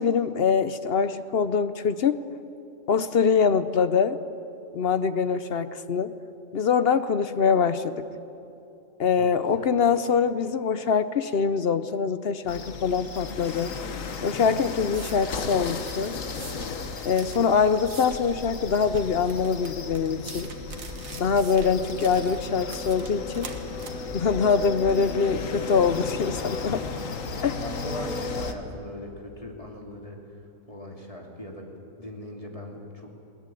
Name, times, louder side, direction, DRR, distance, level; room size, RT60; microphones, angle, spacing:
voice 1, 0.0-2.2 2.9-4.2 4.7-6.1 6.5-8.1 9.0-13.7 14.2-16.2 17.0-20.5 21.1-23.5 24.1-26.9 27.4-27.6, left 6 dB, 55° left, 12 dB, 0.9 m, -24 dB
voice 2, 9.2-9.7 27.3-30.2 30.7-31.7 32.0-33.1, left 1 dB, 25° left, 0 dB, 2.9 m, -40 dB
sound 1, 12.5-28.5, left 5 dB, 75° left, 1.6 m, -35 dB
sound 2, 14.9-25.8, right 4 dB, 90° right, 1.9 m, -43 dB
sound 3, 20.6-28.5, left 1 dB, 25° right, 8.0 m, -47 dB
21.0 x 18.5 x 9.8 m, 2.8 s
omnidirectional pair, 1.4 m